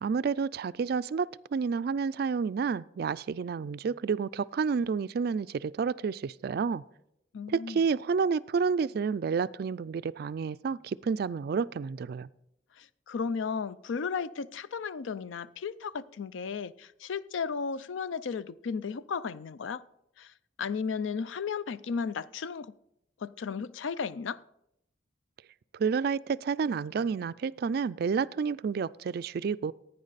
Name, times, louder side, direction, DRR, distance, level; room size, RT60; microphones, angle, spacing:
voice 1, 0.0-6.8 7.5-12.3 25.7-29.7, right 5 dB, 55° right, 0.3 m, -30 dB
voice 2, 7.3-7.8 12.8-19.8 20.2-22.7 23.2-24.4, left 5 dB, 85° left, 0.4 m, -34 dB
15.5 x 9.4 x 4.1 m
head